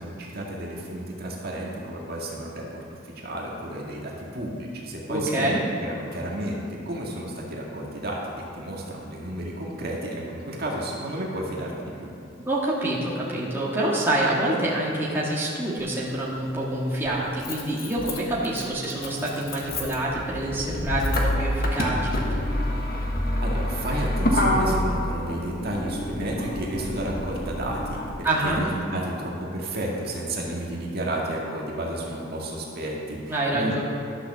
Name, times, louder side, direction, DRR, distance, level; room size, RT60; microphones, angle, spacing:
voice 1, 0.0-2.7 3.2-8.2 8.5-12.1 23.4-33.8, right 1 dB, 55° right, -2 dB, 1.8 m, -32 dB
voice 2, 5.1-5.6 12.5-22.2 28.2-28.6 33.3-33.8, right 1 dB, 10° right, -7 dB, 1.8 m, -26 dB
Motor vehicle (road), 15.8-15.9 17.0-28.2, left 1 dB, 50° left, 1.4 m, -27 dB
12.0 x 6.4 x 6.7 m, 2.6 s
head